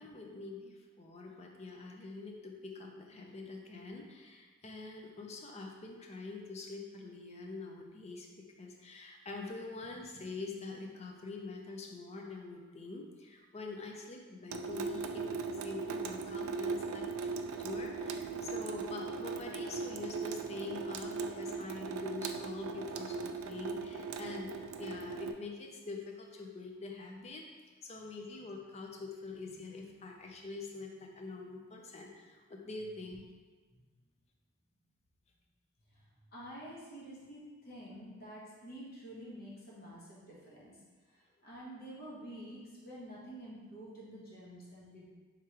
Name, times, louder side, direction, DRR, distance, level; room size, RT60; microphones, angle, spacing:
voice 1, 0.0-27.4 27.8-33.2, left 3 dB, 30° left, 1 dB, 0.5 m, -45 dB
Water tap faucet / Sink (filling or washing) / Drip, 14.5-25.3, right 5 dB, 80° right, 0.3 m, -39 dB
voice 2, 35.9-40.8 41.1-45.1, right 1 dB, 45° left, -7 dB, 1.2 m, -49 dB
3.6 x 3.0 x 4.7 m, 1.3 s
head